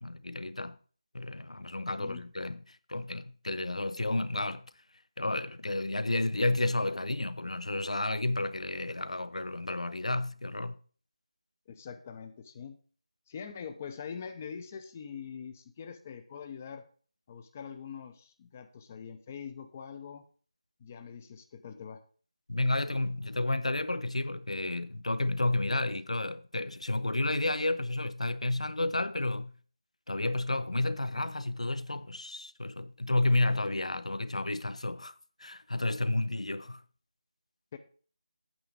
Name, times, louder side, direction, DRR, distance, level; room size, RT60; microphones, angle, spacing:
voice 1, 0.0-0.8 1.1-4.6 5.2-10.8 22.5-29.5 30.1-35.1 35.4-36.8, left 2 dB, 80° left, 0.6 m, -31 dB
voice 2, 11.7-12.8 13.3-16.8 17.3-20.2 20.8-22.0 37.7-37.8, left 7 dB, 20° left, 0.6 m, -43 dB
8.8 x 5.9 x 5.1 m
figure-of-eight pair, 165°, 3 cm